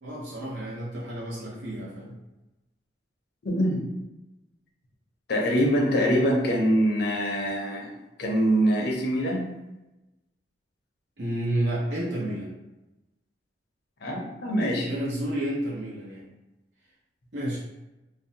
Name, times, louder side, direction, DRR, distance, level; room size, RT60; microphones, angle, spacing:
voice 1, 0.0-2.1 11.2-12.5 14.8-16.2 17.3-17.6, right 1 dB, 75° right, -7 dB, 0.9 m, -30 dB
voice 2, 3.4-3.8 5.3-7.9 8.2-9.5 14.0-14.9, equal, 60° left, -1 dB, 0.6 m, -24 dB
2.6 x 2.1 x 2.7 m, 0.97 s
head